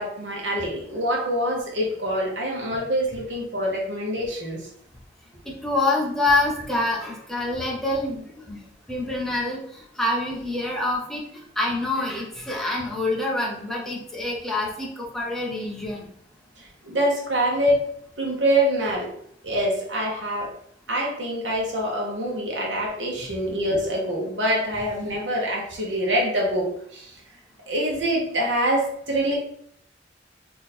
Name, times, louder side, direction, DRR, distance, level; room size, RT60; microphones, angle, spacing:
voice 1, 0.0-4.6 16.8-17.8 18.2-19.1 19.4-20.5 20.9-27.1 27.7-29.3, equal, 70° right, -2 dB, 1.4 m, -25 dB
voice 2, 5.4-8.6 8.9-11.2 11.6-16.0, left 2 dB, ahead, -3 dB, 0.9 m, -26 dB
3.9 x 3.2 x 4.2 m, 0.68 s
head